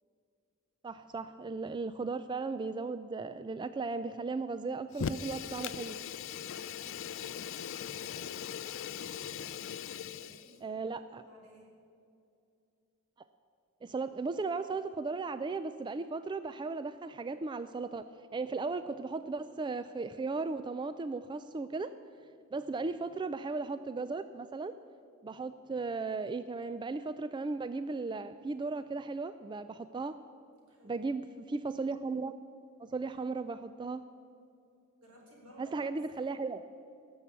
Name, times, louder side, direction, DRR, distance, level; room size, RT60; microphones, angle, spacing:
voice 1, 0.8-6.0 10.6-11.2 13.8-18.0 18.3-21.9 22.5-24.7 25.2-30.2 30.8-32.4 32.8-34.0 35.6-36.6, right 3 dB, 20° right, 12 dB, 0.3 m, -36 dB
Fire, 4.9-10.5, left 8 dB, 65° left, 0.4 m, -40 dB
voice 2, 6.6-8.4 10.1-10.8 11.0-11.7 22.7-23.1 30.7-31.1 33.0-33.4 35.0-36.4, equal, 80° right, -1 dB, 4.2 m, -57 dB
18.0 x 7.2 x 8.1 m, 2.5 s
head